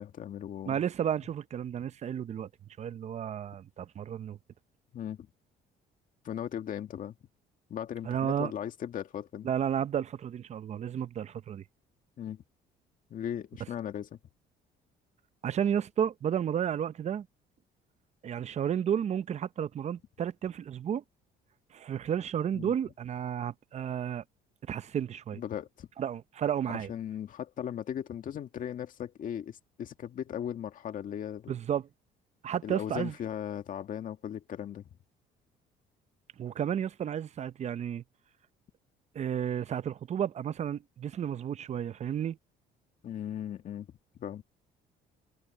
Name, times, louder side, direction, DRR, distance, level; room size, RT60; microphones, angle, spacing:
voice 1, 0.0-0.8 4.9-5.3 6.2-7.1 7.7-9.5 12.2-12.4 13.1-14.1 22.5-22.7 25.3-25.9 26.7-31.6 32.6-34.9 43.0-43.9 44.2-44.4, left 9 dB, 50° left, 1.9 m, -37 dB
voice 2, 0.7-2.5 2.8-4.4 8.1-8.5 9.4-11.6 15.4-17.3 18.2-21.0 21.7-24.2 24.7-25.4 26.0-26.9 31.5-31.9 32.4-33.1 36.4-38.0 39.1-42.4, right 9 dB, 40° right, 0.7 m, -32 dB
cardioid pair, 110°, 17 cm